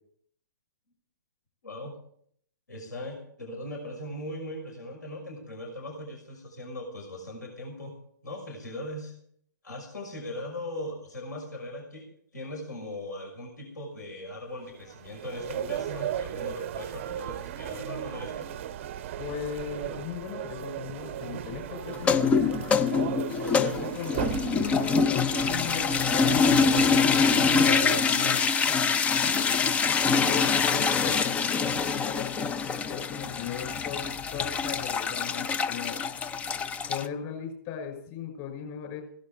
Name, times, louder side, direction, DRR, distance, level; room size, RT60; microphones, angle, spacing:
voice 1, 1.6-1.9 2.7-7.9 8.2-9.1 9.6-18.6, left 1 dB, 70° left, 1 dB, 6.0 m, -39 dB
sound 1, 14.6-28.0, right 11 dB, 40° right, 0.7 m, -36 dB
voice 2, 19.2-22.8 23.5-28.5 29.2-29.6 30.3-32.5 32.9-34.0 34.3-36.0 36.9-39.0, left 9 dB, 35° left, 3 dB, 6.0 m, -38 dB
sound 2, 21.9-37.1, left 5 dB, 15° left, 0.5 m, -25 dB
17.0 x 11.5 x 4.9 m, 0.66 s
figure-of-eight pair, 120°, 10 cm